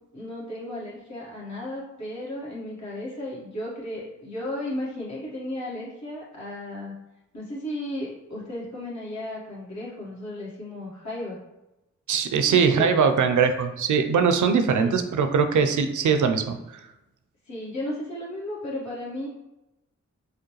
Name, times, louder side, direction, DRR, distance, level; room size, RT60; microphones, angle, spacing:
voice 1, 0.1-7.0 7.3-11.4 12.5-13.0 14.8-15.0 17.4-19.3, left 1 dB, 65° left, -7 dB, 1.4 m, -34 dB
voice 2, 12.1-16.6, right 6 dB, 75° right, 8 dB, 0.5 m, -21 dB
4.8 x 2.1 x 3.1 m, 0.95 s
cardioid pair, 45°, 30 cm